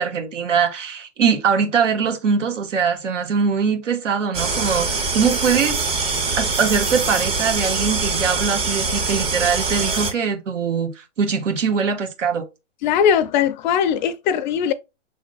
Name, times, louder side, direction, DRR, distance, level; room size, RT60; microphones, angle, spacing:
voice 1, 0.0-5.8 6.3-12.4, right 6 dB, 80° right, 1.4 m, -22 dB
sound 1, 4.3-10.1, right 4 dB, 15° right, 0.6 m, -23 dB
voice 2, 12.8-14.7, left 8 dB, 40° left, 0.5 m, -20 dB
6.5 x 3.5 x 2.3 m
hypercardioid pair, 130°, 37 cm